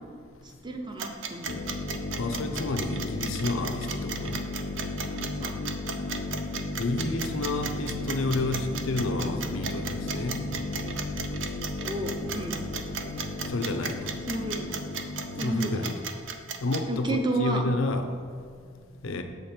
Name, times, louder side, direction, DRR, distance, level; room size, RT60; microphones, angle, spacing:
voice 1, 0.6-1.5 5.4-5.5 11.8-12.6 14.3-14.7 15.4-15.9 16.9-17.7, right 2 dB, 20° right, 3 dB, 0.6 m, -31 dB
sound 1, 1.0-16.8, right 6 dB, 70° right, 0.6 m, -35 dB
sound 2, 1.5-15.4, left 2 dB, 45° left, 0.4 m, -35 dB
voice 2, 2.2-4.4 6.8-10.4 13.5-14.0 15.4-15.9 16.6-18.1 19.0-19.2, left 2 dB, 85° left, 6 dB, 0.6 m, -30 dB
6.9 x 5.1 x 4.4 m, 2.2 s
head